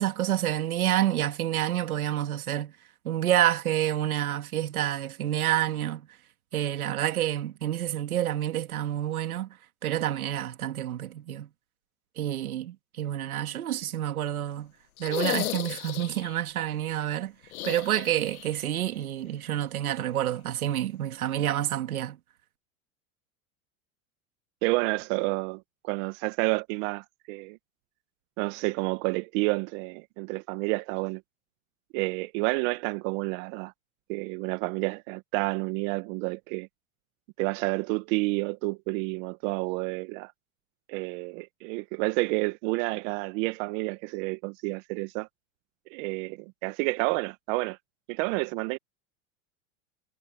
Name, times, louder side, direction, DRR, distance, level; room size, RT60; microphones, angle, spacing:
voice 1, 0.0-2.7 3.0-6.1 6.5-9.5 9.8-11.5 12.2-14.7 15.0-17.3 17.6-22.2, right 12 dB, 90° right, 2.5 m, -28 dB
sound 1, 15.0-16.4 17.5-18.7 18.9-19.0 20.7-20.8, left 15 dB, 80° left, 1.9 m, -34 dB
voice 2, 24.6-27.6 28.4-31.2 31.9-33.7 34.1-36.7 37.4-40.3 40.9-45.3 45.9-47.8 48.1-48.8, right 26 dB, 60° right, 1.9 m, -30 dB
hypercardioid pair, 100°, 42 cm